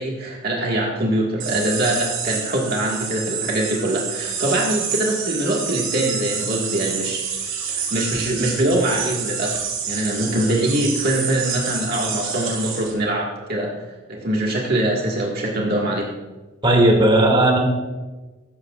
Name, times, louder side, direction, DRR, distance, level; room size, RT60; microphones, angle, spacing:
voice 1, 0.0-7.2 7.7-16.2, right 1 dB, 50° right, -3 dB, 1.8 m, -23 dB
sound 1, 1.4-12.9, right 6 dB, 80° right, 4.6 m, -28 dB
voice 2, 16.6-17.6, right 1 dB, 25° right, 1 dB, 2.3 m, -15 dB
16.0 x 13.5 x 2.4 m, 1.2 s
head